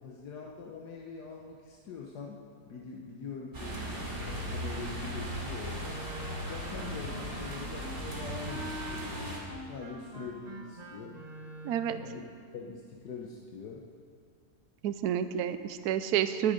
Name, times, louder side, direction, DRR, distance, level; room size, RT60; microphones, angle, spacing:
voice 1, 0.0-2.4 2.6-3.8 4.2-6.0 6.5-11.2 11.9-12.2 12.5-13.9, left 4 dB, 80° left, -1 dB, 1.6 m, -43 dB
sound 1, 3.5-9.4, equal, 45° right, 3.0 m, -37 dB
Wind instrument woodwind instrument, 5.8-12.2, right 1 dB, 25° right, 1.4 m, -44 dB
voice 2, 11.6-12.0 14.8-16.5, right 10 dB, 75° right, 11 dB, 1.1 m, -29 dB
19.5 x 9.0 x 5.1 m, 2.3 s
omnidirectional pair, 1.7 m